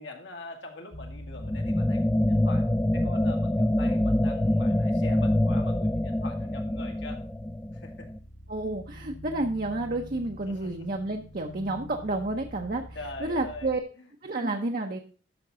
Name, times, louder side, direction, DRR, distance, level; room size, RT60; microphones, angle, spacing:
voice 1, 0.0-7.2 7.7-8.1 10.5-10.7 13.0-14.1, left 2 dB, 70° left, 3 dB, 1.9 m, -43 dB
sound 1, 0.9-13.8, equal, 40° left, 1.3 m, -44 dB
sound 2, 1.4-8.2, left 1 dB, 10° left, 0.4 m, -25 dB
voice 2, 8.5-12.8 13.2-13.8 14.2-15.0, right 2 dB, 50° right, 3 dB, 0.8 m, -30 dB
13.0 x 5.2 x 3.8 m, 0.38 s
head